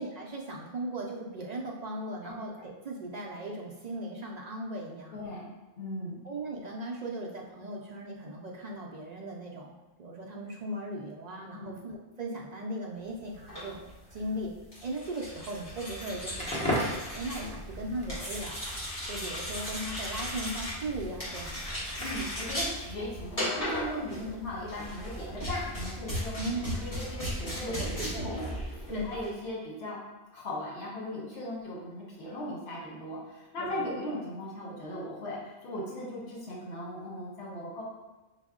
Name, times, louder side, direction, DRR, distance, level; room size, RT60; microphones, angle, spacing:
voice 1, 0.0-5.2 6.2-9.7 10.0-14.5 14.8-18.6 19.1-21.6 24.2-24.5 26.4-26.9 27.7-28.3 28.9-29.1 33.6-33.8, right 1 dB, 55° right, -1 dB, 0.4 m, -38 dB
voice 2, 2.2-2.6 5.1-5.5 5.8-6.2 11.5-11.8 22.0-26.3 26.7-28.3 28.7-30.0 30.3-37.8, left 1 dB, 70° left, -5 dB, 1.2 m, -38 dB
sound 1, 13.3-29.3, equal, 55° left, 1.8 m, -37 dB
Crackle, 16.3-22.4, equal, 5° left, 1.0 m, -38 dB
6.0 x 2.0 x 3.6 m, 1.1 s
omnidirectional pair, 1.1 m